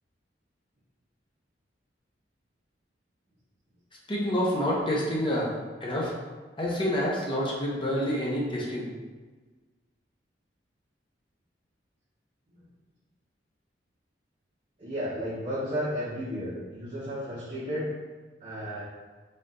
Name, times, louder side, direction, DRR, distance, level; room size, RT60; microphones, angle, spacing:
voice 1, 4.1-5.5 5.8-6.1 6.6-8.9, equal, 30° left, -4 dB, 0.8 m, -27 dB
voice 2, 14.8-17.9 18.4-18.8, equal, 40° right, -10 dB, 1.0 m, -33 dB
4.2 x 2.6 x 3.7 m, 1.3 s
head